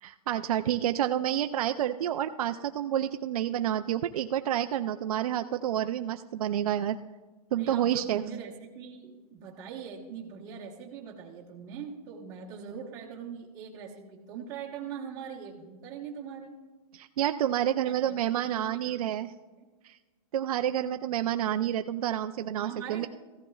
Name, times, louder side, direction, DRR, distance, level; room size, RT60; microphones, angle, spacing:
voice 1, 0.0-7.0 7.5-8.2 16.9-19.3 19.8-20.0 20.3-23.1, right 11 dB, 65° right, 7 dB, 0.4 m, -29 dB
voice 2, 7.5-16.5 17.8-19.2 22.6-23.1, right 7 dB, 15° right, -2 dB, 1.1 m, -42 dB
15.0 x 13.5 x 2.3 m, 1.3 s
hypercardioid pair, 180°, 20 cm